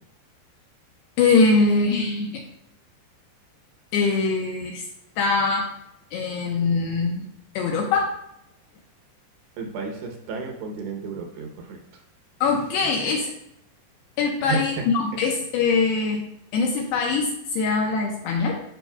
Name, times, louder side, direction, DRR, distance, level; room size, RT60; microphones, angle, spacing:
voice 1, 1.2-2.4 3.9-4.8 5.2-5.7 6.1-7.3 7.6-8.1 12.4-13.3 14.2-16.3 16.5-18.6, left 4 dB, 80° left, 0 dB, 2.4 m, -22 dB
voice 2, 9.6-12.0 14.4-14.8, right 4 dB, 75° right, 2 dB, 2.8 m, -32 dB
14.5 x 5.2 x 2.3 m, 0.79 s
omnidirectional pair, 5.3 m